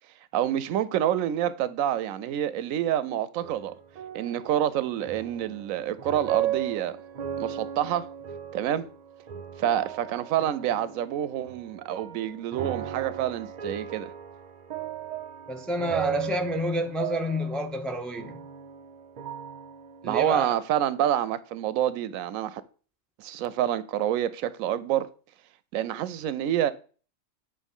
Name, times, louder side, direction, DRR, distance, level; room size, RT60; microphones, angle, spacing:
voice 1, 0.3-3.8 4.1-7.0 7.4-8.1 8.5-8.9 9.6-14.1 20.0-22.6 23.2-25.1 25.7-26.7, right 11 dB, 85° right, 1.0 m, -27 dB
sound 1, 3.4-20.2, right 10 dB, 70° right, 0.4 m, -37 dB
voice 2, 15.5-18.4 20.0-20.5, equal, ahead, 0.5 m, -29 dB
8.4 x 3.0 x 5.4 m
omnidirectional pair, 1.4 m